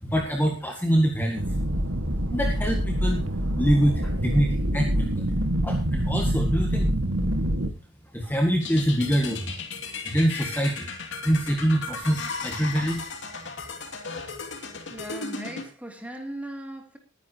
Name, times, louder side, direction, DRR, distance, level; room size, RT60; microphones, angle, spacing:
voice 1, 0.0-1.6 2.3-3.2 3.6-5.3 5.6-6.9 8.1-9.5 10.0-10.9 11.2-13.1, equal, 10° left, 1.8 m, -25 dB
sound 1, 1.4-7.7, equal, 75° right, 1.8 m, -25 dB
sound 2, 8.6-15.6, left 4 dB, 60° left, 2.8 m, -36 dB
voice 2, 14.9-17.0, right 1 dB, 5° right, 2.9 m, -38 dB
20.5 x 10.5 x 2.9 m
head